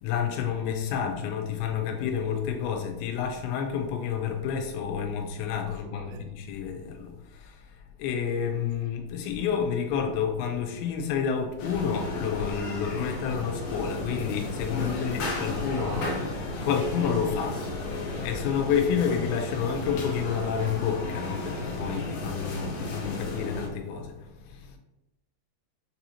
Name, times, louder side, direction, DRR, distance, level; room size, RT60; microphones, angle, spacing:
voice 1, 0.0-16.0 16.4-24.8, left 7 dB, 85° left, 2.9 m, -30 dB
voice 2, 5.7-6.3 15.3-16.5, right 5 dB, 85° right, 3.0 m, -44 dB
sound 1, 11.6-23.7, left 2 dB, 70° left, 2.2 m, -34 dB
6.8 x 2.8 x 2.7 m
omnidirectional pair, 5.2 m